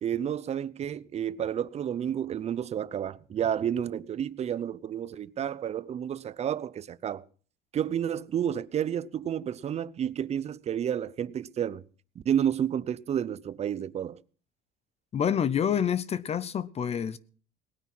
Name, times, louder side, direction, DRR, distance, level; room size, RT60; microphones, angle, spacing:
voice 1, 0.0-7.2 7.7-11.8 12.2-14.2, right 9 dB, 35° right, 0.6 m, -30 dB
voice 2, 15.1-17.2, left 8 dB, 30° left, 0.6 m, -27 dB
19.0 x 9.5 x 6.0 m
cardioid pair, 140°, 20 cm